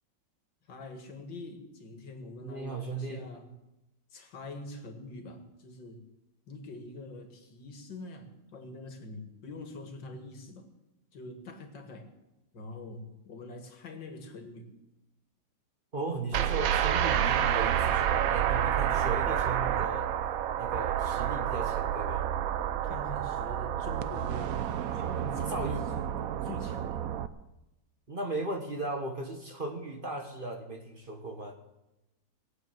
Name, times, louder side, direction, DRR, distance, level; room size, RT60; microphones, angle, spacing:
voice 1, 0.7-3.5 4.1-6.0 6.5-10.7 11.1-12.1 12.5-14.7 22.8-24.7 24.9-26.1 26.4-27.2, left 2 dB, 80° left, 5 dB, 2.5 m, -44 dB
voice 2, 2.4-3.3 15.9-20.1 20.6-22.3 25.5-25.9 28.1-31.5, right 2 dB, 30° right, 3 dB, 1.4 m, -36 dB
sound 1, 16.3-27.3, right 10 dB, 65° right, 0.9 m, -29 dB
20.0 x 8.2 x 7.8 m, 0.96 s
omnidirectional pair, 2.0 m